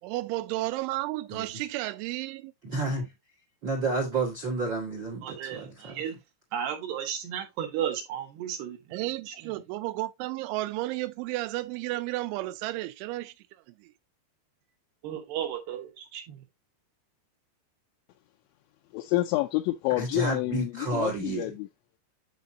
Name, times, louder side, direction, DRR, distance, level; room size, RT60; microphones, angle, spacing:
voice 1, 0.0-2.5 8.9-13.3 13.8-13.9, right 18 dB, 85° right, 3.1 m, -32 dB
voice 2, 2.6-3.1 3.6-5.9 20.0-21.5, right 3 dB, 55° right, 1.3 m, -30 dB
voice 3, 5.2-6.2 6.5-9.0 9.3-9.5 15.0-16.4, right 9 dB, 70° right, 3.0 m, -34 dB
voice 4, 18.9-21.7, left 17 dB, 85° left, 3.0 m, -28 dB
9.4 x 5.8 x 2.7 m
omnidirectional pair, 5.4 m